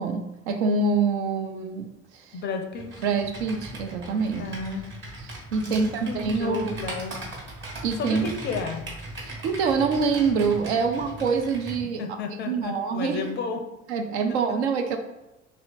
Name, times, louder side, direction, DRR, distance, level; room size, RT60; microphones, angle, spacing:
voice 1, 0.0-2.4 3.0-4.5 5.5-6.7 7.8-8.3 9.2-12.0 12.5-13.2 13.9-15.0, right 4 dB, 65° right, 5 dB, 0.6 m, -25 dB
voice 2, 2.3-3.1 4.4-4.9 5.7-7.4 8.0-8.8 12.0-13.6 14.3-14.6, left 4 dB, 30° left, 6 dB, 0.4 m, -33 dB
Computer keyboard, 2.7-11.8, right 1 dB, 30° right, 1.3 m, -39 dB
3.1 x 2.8 x 4.2 m, 0.97 s
figure-of-eight pair, 60°, 37 cm